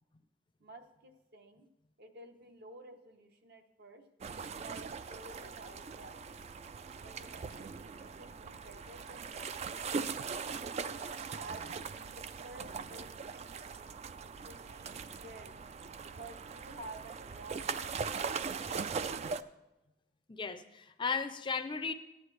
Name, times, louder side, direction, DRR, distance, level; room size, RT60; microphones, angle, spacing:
voice 1, 0.6-1.7 2.0-4.0 4.5-6.4 7.0-10.6 11.1-13.9 14.4-15.6 16.0-18.0, right 2 dB, 60° right, 5 dB, 1.0 m, -52 dB
sound 1, 4.2-19.4, right 5 dB, 35° right, 0.3 m, -40 dB
voice 2, 20.3-21.9, left 5 dB, 25° left, 9 dB, 0.5 m, -35 dB
14.0 x 9.7 x 3.2 m, 0.95 s
head